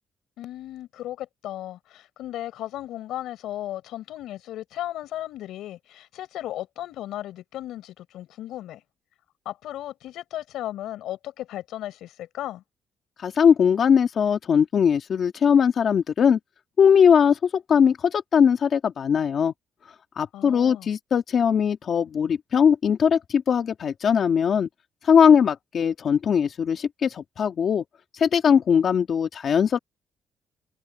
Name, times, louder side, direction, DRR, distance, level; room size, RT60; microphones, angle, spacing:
voice 1, 0.4-8.8 9.5-12.6 20.3-20.9, left 13 dB, 85° left, 5.6 m, -35 dB
voice 2, 13.2-16.4 16.8-19.5 20.2-24.7 25.0-27.8 28.1-29.8, left 7 dB, 55° left, 1.8 m, -20 dB
cardioid pair, 90°, 0 cm